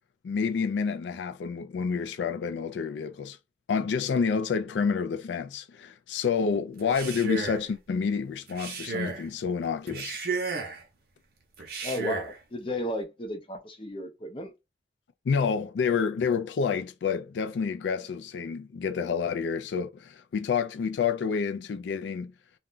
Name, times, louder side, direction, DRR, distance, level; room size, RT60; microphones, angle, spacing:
voice 1, 0.2-3.4 3.7-10.2 15.3-22.3, left 6 dB, 90° left, 0.3 m, -29 dB
Male speech man speaking, 6.8-7.7 8.5-9.3 9.9-10.8 11.6-12.4, right 4 dB, 60° right, 0.6 m, -33 dB
voice 2, 11.8-14.5, left 1 dB, 30° left, 0.5 m, -34 dB
2.3 x 2.1 x 3.7 m
head